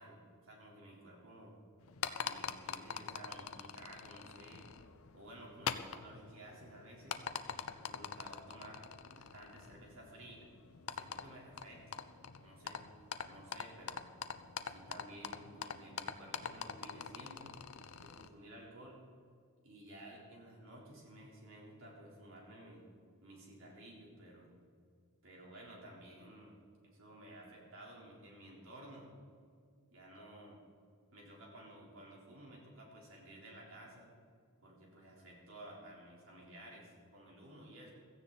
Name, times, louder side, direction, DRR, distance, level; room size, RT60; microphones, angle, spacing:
voice 1, 0.0-1.6 2.2-4.7 5.1-7.2 7.8-10.5 10.9-12.1 12.4-12.9 13.2-14.0 14.6-17.6 18.0-19.0 19.6-22.9 23.2-24.5 25.2-26.6 26.8-29.1 29.9-30.6 31.1-34.1 34.6-37.9, right 1 dB, 60° right, -3 dB, 3.9 m, -54 dB
sound 1, 1.8-18.3, left 7 dB, 70° left, 0.7 m, -45 dB
16.5 x 14.0 x 4.2 m, 2.1 s
head